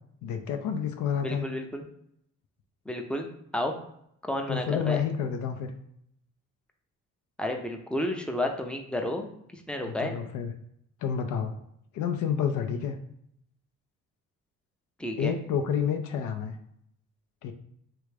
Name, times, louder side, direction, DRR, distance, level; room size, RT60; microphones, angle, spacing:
voice 1, 0.2-1.4 4.5-5.7 9.9-10.5 11.0-11.5 11.9-13.0 15.2-16.6 17.4-17.5, left 7 dB, 75° left, 6 dB, 0.5 m, -29 dB
voice 2, 1.2-1.8 2.9-3.3 3.5-3.7 4.2-5.0 7.4-9.3 9.5-10.2 15.0-15.4, left 1 dB, 5° left, 3 dB, 0.5 m, -31 dB
3.4 x 2.4 x 3.2 m, 0.72 s
cardioid pair, 90°, 30 cm